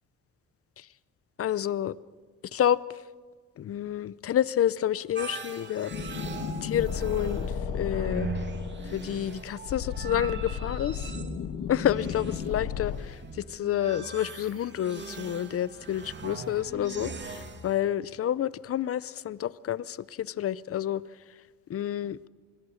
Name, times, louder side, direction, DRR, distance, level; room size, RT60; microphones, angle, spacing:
voice 1, 1.4-1.9 2.5-2.8 3.6-5.9 6.6-8.3 8.9-11.1 11.7-21.0 21.7-22.2, left 11 dB, 50° left, 19 dB, 0.7 m, -29 dB
sound 1, 5.1-17.8, right 4 dB, 35° right, 2.5 m, -41 dB
sound 2, 5.9-13.0, left 6 dB, 80° left, 2.3 m, -34 dB
25.5 x 21.5 x 6.5 m, 1.5 s
cardioid pair, 90°, 30 cm